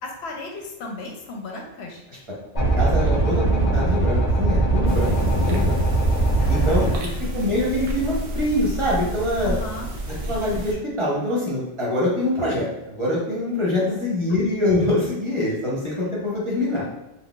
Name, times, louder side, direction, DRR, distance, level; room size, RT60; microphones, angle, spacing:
voice 1, 0.0-2.0 6.4-7.3 9.4-9.9 13.9-14.0, left 3 dB, 80° left, 1 dB, 0.9 m, -36 dB
sound 1, 2.5-6.9, right 2 dB, 40° left, 0.9 m, -20 dB
voice 2, 2.8-5.1 5.5-5.8 6.5-9.5 10.3-16.9, left 1 dB, 30° right, -6 dB, 0.8 m, -24 dB
sound 2, 4.9-10.7, equal, 65° right, 0.8 m, -30 dB
3.9 x 2.1 x 2.3 m, 0.88 s
omnidirectional pair, 1.1 m